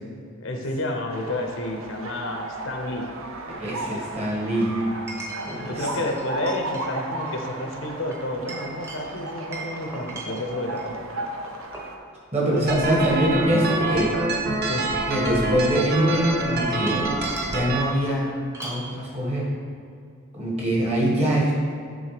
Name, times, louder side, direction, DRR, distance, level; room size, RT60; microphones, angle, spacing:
voice 1, 0.4-3.1 5.6-11.2 14.7-14.9, left 1 dB, 70° left, 3 dB, 0.9 m, -30 dB
sound 1, 1.1-12.0, right 2 dB, 85° right, 0.8 m, -35 dB
voice 2, 3.6-4.8 5.4-5.9 12.3-14.1 15.1-17.1 17.5-18.3 18.6-19.5 20.3-21.5, right 1 dB, 30° right, -4 dB, 1.8 m, -23 dB
Chink clink, 5.1-5.6 6.1-6.9 7.2-7.4 8.1-10.9 11.5-12.0 12.5-12.6 12.9-14.4 15.1-15.6 16.5-17.7 18.5-18.9, right 2 dB, 15° right, 1.1 m, -39 dB
sound 2, 12.7-17.8, right 2 dB, 50° right, 0.9 m, -26 dB
9.0 x 3.8 x 5.1 m, 2.3 s
head